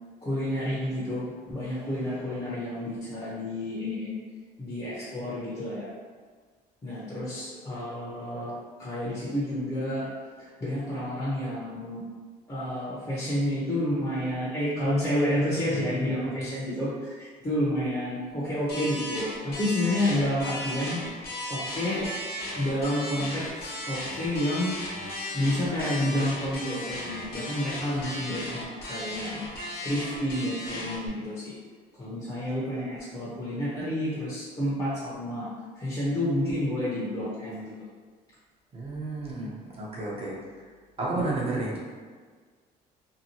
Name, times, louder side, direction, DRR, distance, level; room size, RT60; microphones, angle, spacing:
voice 1, 0.2-4.2 4.6-5.9 6.8-10.1 10.4-12.0 12.5-21.0 21.5-22.1 22.5-24.7 25.3-29.4 29.8-31.5 32.0-35.5 35.8-37.7, left 1 dB, 25° left, -9 dB, 0.8 m, -30 dB
sound 1, 18.7-31.1, left 1 dB, 70° left, 1.0 m, -36 dB
voice 2, 38.7-40.3 41.0-41.8, right 2 dB, 35° right, -5 dB, 0.8 m, -31 dB
2.8 x 2.1 x 2.9 m, 1.6 s
cardioid pair, 110°, 17 cm